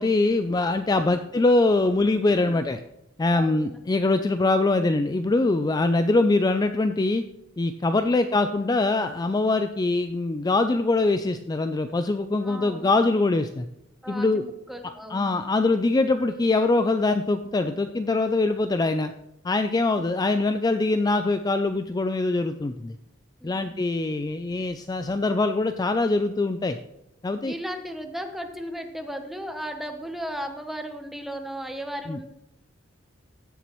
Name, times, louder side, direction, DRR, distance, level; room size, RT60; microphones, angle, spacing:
voice 1, 0.0-2.8 3.2-7.2 7.6-13.7 14.1-14.4 15.1-19.1 19.4-22.9 23.4-26.8 27.2-27.5 32.1-32.2, left 2 dB, 20° left, 9 dB, 0.3 m, -23 dB
voice 2, 3.3-3.8 7.9-8.1 12.4-13.0 14.0-15.3 23.4-23.7 27.4-32.3, equal, ahead, 5 dB, 0.9 m, -36 dB
15.0 x 7.2 x 3.1 m, 0.83 s
head